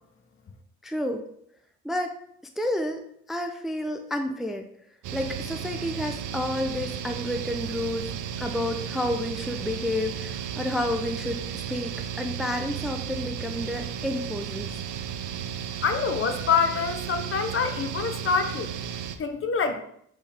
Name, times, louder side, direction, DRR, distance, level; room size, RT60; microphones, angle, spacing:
voice 1, 0.8-1.2 1.8-2.2 2.6-3.0 3.3-4.7 5.1-8.1 8.4-14.8, left 1 dB, ahead, 5 dB, 0.5 m, -30 dB
sound 1, 5.0-19.2, right 8 dB, 85° right, 0.6 m, -34 dB
voice 2, 15.8-18.7 19.2-19.8, left 5 dB, 45° left, 8 dB, 0.9 m, -26 dB
7.1 x 4.6 x 3.4 m, 0.71 s
cardioid pair, 90°, 30 cm